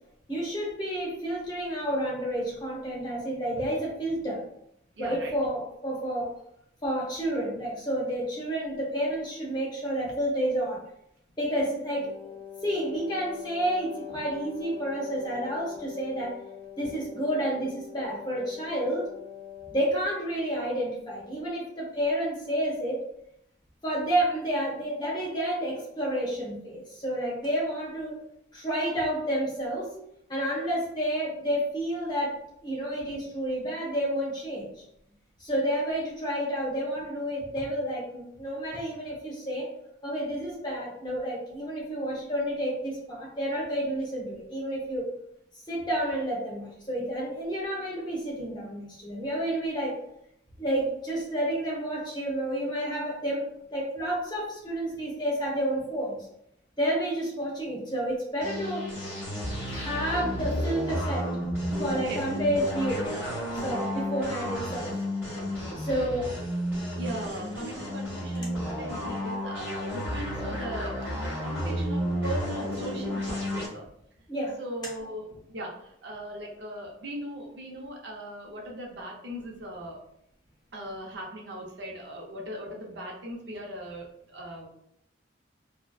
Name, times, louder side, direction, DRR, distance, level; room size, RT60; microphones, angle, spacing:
voice 1, 0.3-4.4 5.0-6.3 6.8-10.8 11.4-12.1 12.6-16.4 16.8-19.1 19.7-23.1 23.8-28.2 28.5-29.9 30.3-34.7 35.4-39.7 40.0-45.0 45.7-50.0 50.6-53.4 53.7-56.3 56.8-58.9 59.7-61.3 61.8-63.2 63.5-64.9 65.8-66.4 74.3-74.6, right 1 dB, 25° left, -4 dB, 0.8 m, -30 dB
voice 2, 5.0-5.3 19.6-19.7 62.1-62.2 67.0-73.8 74.6-80.0 80.7-84.7, equal, 70° right, -1 dB, 0.5 m, -39 dB
Wind instrument woodwind instrument, 11.9-20.1, left 9 dB, 50° right, 1.0 m, -43 dB
sound 1, 58.4-73.7, equal, 10° right, 1.1 m, -32 dB
2.7 x 2.0 x 2.2 m, 0.74 s
head